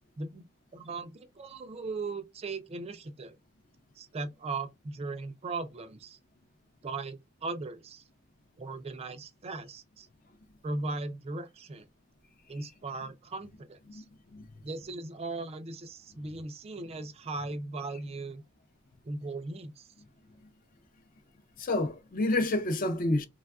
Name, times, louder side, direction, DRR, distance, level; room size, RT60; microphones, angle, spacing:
voice 1, 0.7-3.4 4.0-6.2 6.8-8.0 8.6-10.1 10.6-11.8 12.5-14.0 14.6-18.4 19.0-19.9, right 3 dB, 30° right, 0.3 m, -38 dB
voice 2, 21.6-23.3, left 2 dB, 40° left, 0.4 m, -28 dB
3.3 x 2.2 x 2.3 m
head